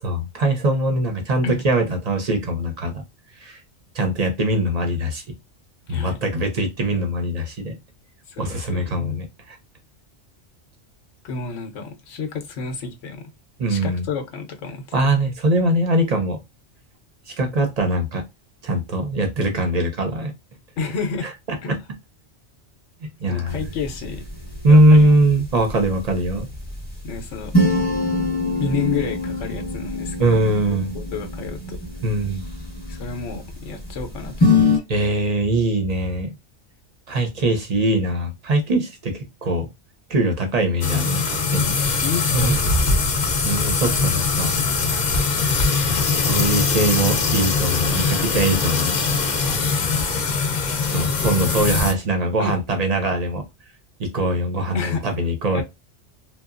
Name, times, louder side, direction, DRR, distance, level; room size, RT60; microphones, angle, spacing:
voice 1, 0.0-3.0 3.4-3.6 3.9-5.2 5.9-7.8 8.4-9.6 13.6-14.1 14.9-16.4 17.3-18.2 18.6-20.3 21.7-21.8 23.0-23.5 24.6-26.5 30.2-30.9 32.0-32.5 34.9-36.3 37.1-39.7 40.1-42.0 42.3-42.6 43.4-44.5 46.2-49.0 49.8-49.9 50.9-53.4 54.0-55.6, right 1 dB, 45° right, 0.6 m, -21 dB
voice 2, 8.3-9.2 11.2-13.3 13.7-14.9 20.8-21.3 21.6-21.7 23.3-24.2 24.7-25.2 27.0-27.5 28.6-30.4 30.7-31.8 32.9-34.8 42.0-42.9 49.4-50.4 52.4-52.6 54.7-55.0 55.5-55.6, left 4 dB, 90° left, 0.9 m, -30 dB
sound 1, 23.5-34.8, left 2 dB, 10° left, 0.7 m, -25 dB
sound 2, 40.8-51.9, left 4 dB, 50° left, 0.6 m, -21 dB
2.8 x 2.2 x 2.4 m
omnidirectional pair, 1.2 m